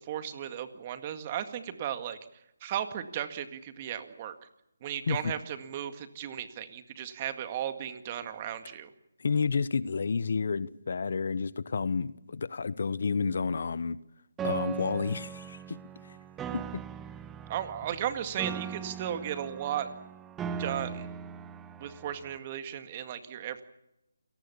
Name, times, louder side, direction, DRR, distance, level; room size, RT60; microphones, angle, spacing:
voice 1, 0.1-2.2 2.6-4.3 4.8-8.9 17.5-19.9 20.6-21.1 21.8-23.6, right 10 dB, 30° right, 9 dB, 2.0 m, -35 dB
voice 2, 9.2-14.0 14.4-15.8 16.5-16.8, left 5 dB, 60° left, 18 dB, 1.0 m, -30 dB
Piano, 14.4-22.4, right 7 dB, 10° right, 0.9 m, -39 dB
28.0 x 18.5 x 7.1 m, 0.87 s
figure-of-eight pair, 155°, 0 cm